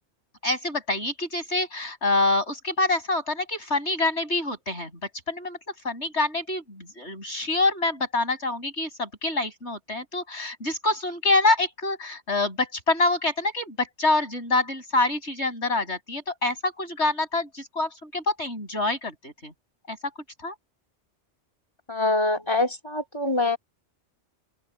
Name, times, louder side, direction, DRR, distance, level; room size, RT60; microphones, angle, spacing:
voice 1, 0.4-4.9 5.3-5.6 5.8-19.5 19.9-20.0 20.4-20.5, left 2 dB, 75° left, 8.0 m, -26 dB
voice 2, 21.9-23.6, left 2 dB, 25° left, 2.8 m, -24 dB
open air
omnidirectional pair, 1.2 m